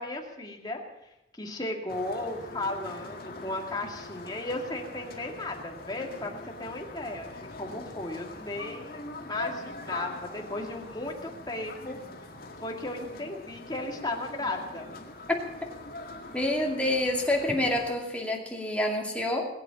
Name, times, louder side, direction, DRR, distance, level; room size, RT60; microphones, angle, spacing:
voice 1, 0.0-12.0 12.6-14.9, left 2 dB, 25° left, 1 dB, 2.2 m, -35 dB
sound 1, 1.9-17.9, left 2 dB, 55° left, 2.1 m, -43 dB
voice 2, 16.3-19.4, left 1 dB, 5° left, -1 dB, 2.4 m, -27 dB
20.5 x 8.4 x 7.1 m, 0.87 s
head